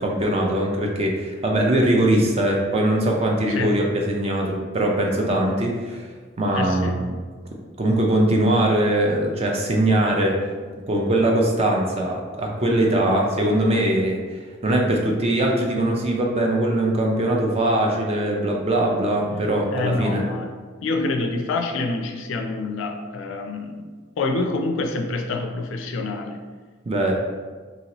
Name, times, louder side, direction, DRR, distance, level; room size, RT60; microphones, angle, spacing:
voice 1, 0.0-6.1 6.4-7.2 7.8-10.4 10.9-14.2 14.6-20.2 26.9-27.1, right 1 dB, 30° right, 0 dB, 0.4 m, -21 dB
voice 2, 3.5-3.8 6.5-7.0 19.3-19.4 19.7-20.5 20.8-23.9 24.2-26.4, left 3 dB, 65° left, 3 dB, 0.4 m, -27 dB
2.8 x 2.7 x 2.9 m, 1.5 s
head